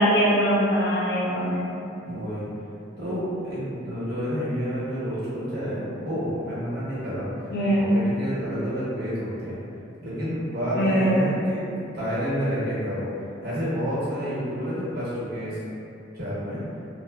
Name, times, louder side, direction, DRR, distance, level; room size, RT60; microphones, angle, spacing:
voice 1, 0.0-1.7 7.5-7.9 10.8-11.2, equal, 55° left, -7 dB, 0.6 m, -22 dB
voice 2, 2.1-2.5 3.0-9.6 10.0-13.1 13.4-15.7 16.1-16.6, equal, 50° right, -10 dB, 0.9 m, -29 dB
2.9 x 2.0 x 2.2 m, 2.7 s
head